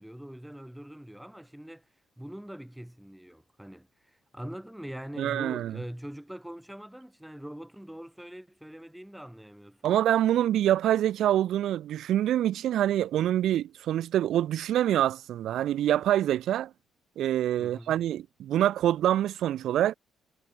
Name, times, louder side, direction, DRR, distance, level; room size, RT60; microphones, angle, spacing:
voice 1, 0.0-1.9 2.2-10.0 17.6-18.0, equal, 5° right, 3.4 m, -43 dB
voice 2, 5.2-5.7 9.8-16.7 17.2-19.9, right 12 dB, 75° right, 0.6 m, -25 dB
cardioid pair, 90°, 0 cm